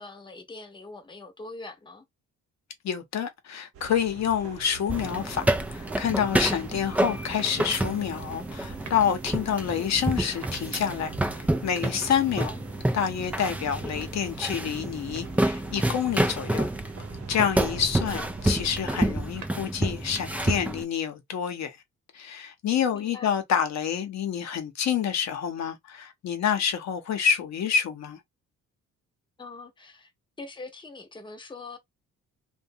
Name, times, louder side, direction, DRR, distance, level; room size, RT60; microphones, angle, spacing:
voice 1, 0.0-2.1 9.7-10.0 12.4-12.6 18.1-18.3 22.9-23.3 29.4-30.1 30.4-31.8, left 3 dB, 15° left, 0.8 m, -43 dB
voice 2, 2.8-12.5 12.9-16.7 17.3-21.8 22.1-28.2, left 8 dB, 65° left, 0.8 m, -28 dB
sound 1, 3.7-19.2, right 7 dB, 50° right, 0.7 m, -45 dB
sound 2, 4.9-20.8, right 1 dB, 5° right, 0.3 m, -29 dB
sound 3, 7.4-8.0 8.7-9.3 10.2-10.7 11.6-12.4 13.2-14.1 15.2-15.8 17.2-17.8 19.1-20.0, right 6 dB, 85° right, 0.9 m, -48 dB
2.6 x 2.3 x 2.6 m
cardioid pair, 90°, 30 cm